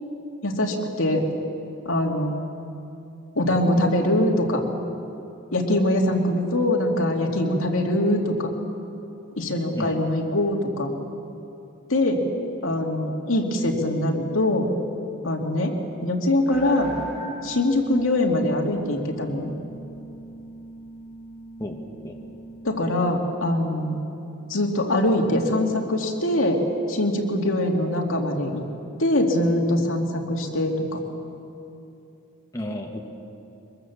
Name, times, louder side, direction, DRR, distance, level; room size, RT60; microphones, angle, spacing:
voice 1, 0.4-1.3 1.8-2.3 3.3-4.6 5.5-8.5 9.4-10.9 11.9-12.2 12.6-14.7 15.2-15.7 16.0-16.9 17.4-19.5 22.6-24.0 24.5-26.6 26.9-28.6 29.0-31.0, left 1 dB, 75° left, 1 dB, 2.6 m, -23 dB
sound 1, 16.5-22.8, right 1 dB, 5° right, 5.1 m, -40 dB
voice 2, 21.6-22.2 32.5-33.0, left 1 dB, 15° left, 1 dB, 1.7 m, -33 dB
23.5 x 22.0 x 7.3 m, 2.8 s
head